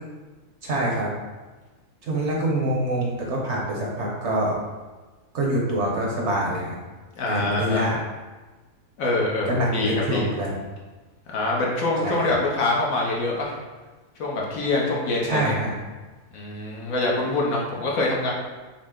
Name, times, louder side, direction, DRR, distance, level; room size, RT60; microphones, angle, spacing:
voice 1, 0.6-1.1 2.1-4.6 5.3-6.8 7.3-8.0 9.5-10.5 12.0-12.1 15.3-15.7, right 1 dB, 55° right, -2 dB, 1.0 m, -25 dB
voice 2, 7.2-8.0 9.0-10.3 11.3-13.6 14.2-15.5 16.3-18.3, left 2 dB, 70° left, -2 dB, 1.2 m, -25 dB
6.2 x 2.1 x 3.6 m, 1.3 s
omnidirectional pair, 1.6 m